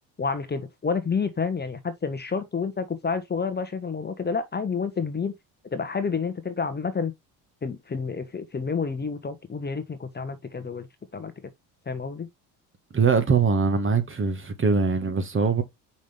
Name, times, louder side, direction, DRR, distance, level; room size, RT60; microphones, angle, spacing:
voice 1, 0.2-5.3 5.7-7.1 7.6-10.9 11.1-11.5 11.9-12.3, left 5 dB, 20° left, 1.2 m, -29 dB
voice 2, 12.9-15.6, right 5 dB, 30° right, 1.4 m, -22 dB
5.5 x 5.2 x 3.3 m
hypercardioid pair, 75°, 44 cm